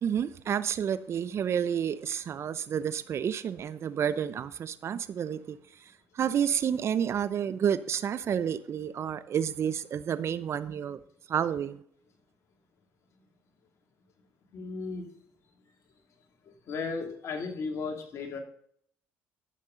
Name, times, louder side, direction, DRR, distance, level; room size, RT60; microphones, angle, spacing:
voice 1, 0.0-5.6 6.1-11.0 11.3-11.8, right 8 dB, 50° right, 0.7 m, -30 dB
voice 2, 14.5-15.1 16.7-18.4, left 4 dB, 55° left, 2.5 m, -35 dB
13.5 x 7.3 x 3.8 m
supercardioid pair, 65°, 6 cm